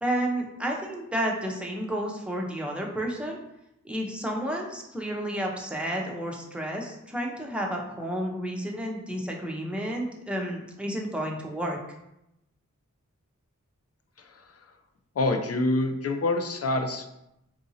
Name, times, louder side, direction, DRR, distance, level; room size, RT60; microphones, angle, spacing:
voice 1, 0.0-3.4 3.8-11.8, right 1 dB, 5° right, -1 dB, 0.7 m, -31 dB
voice 2, 15.2-17.1, left 2 dB, 50° left, 5 dB, 0.5 m, -26 dB
3.7 x 2.7 x 2.7 m, 0.86 s
wide cardioid pair, 40°, 31 cm